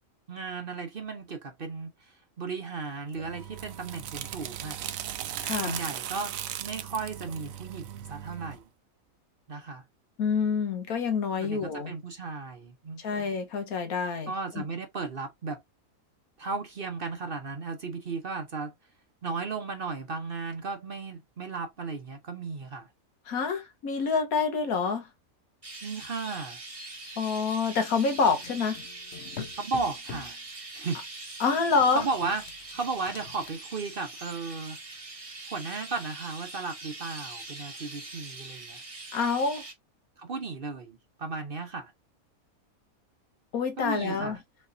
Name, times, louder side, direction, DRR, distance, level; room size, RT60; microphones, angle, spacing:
voice 1, 0.3-4.8 5.5-8.6 9.5-9.8 11.4-13.0 14.3-15.6 16.4-18.7 19.2-22.9 25.8-26.6 29.6-30.4 30.7-31.0 31.9-32.4 32.7-34.8 35.5-38.8 40.2-41.9 43.8-44.4, right 4 dB, 45° right, 1.0 m, -35 dB
sound 1, 3.1-8.6, right 10 dB, 75° right, 1.0 m, -37 dB
voice 2, 5.4-5.8 10.2-11.9 13.0-14.6 23.3-25.1 27.2-28.8 31.4-32.0 39.1-39.6 43.5-44.4, left 5 dB, 75° left, 1.6 m, -27 dB
Chirp tweet, 25.6-39.7, right 2 dB, 25° right, 1.1 m, -43 dB
sound 2, 28.2-30.4 31.4-33.5, left 7 dB, 50° left, 1.1 m, -45 dB
5.2 x 3.4 x 2.6 m
omnidirectional pair, 1.5 m